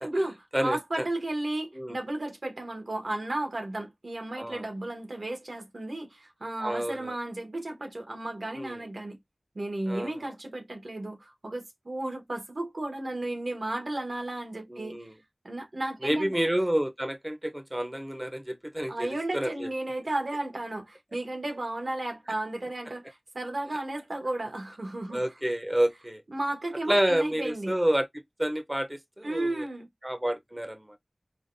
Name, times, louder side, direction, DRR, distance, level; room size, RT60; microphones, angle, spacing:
voice 1, 0.0-0.3 0.6-9.2 9.5-15.1 15.4-16.5 18.9-25.2 26.3-27.7 29.2-29.9, right 1 dB, 75° right, 1.2 m, -34 dB
voice 2, 0.5-1.1 1.8-2.0 4.4-4.6 6.6-7.1 8.5-8.8 9.9-10.3 14.7-15.1 16.0-19.7 25.1-26.2 26.9-28.1 28.4-29.7 30.0-31.0, right 1 dB, 15° right, 0.6 m, -29 dB
5.0 x 2.3 x 2.5 m
wide cardioid pair, 55°, 0 cm